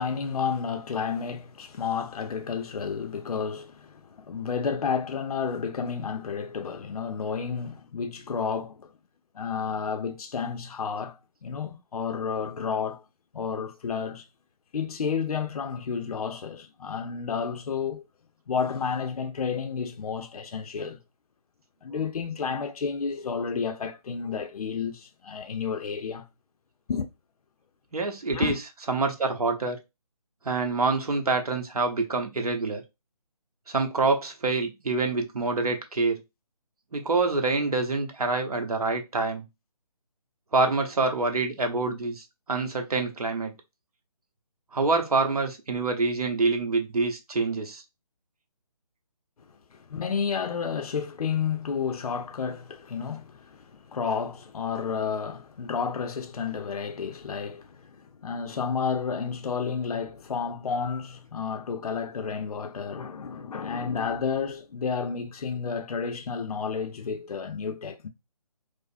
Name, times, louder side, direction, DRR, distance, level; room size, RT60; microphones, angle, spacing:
voice 1, 0.0-8.9 9.3-13.0 13.3-14.3 14.7-18.0 18.5-21.0 21.8-26.3 26.9-27.1 28.3-28.6 49.7-68.1, left 6 dB, 70° left, 0.5 m, -31 dB
voice 2, 27.9-28.5 28.9-29.8 30.4-32.8 33.7-36.2 36.9-39.5 40.5-43.5 44.7-47.8, right 3 dB, 70° right, 1.0 m, -26 dB
4.9 x 2.0 x 2.5 m
figure-of-eight pair, 155°, 20 cm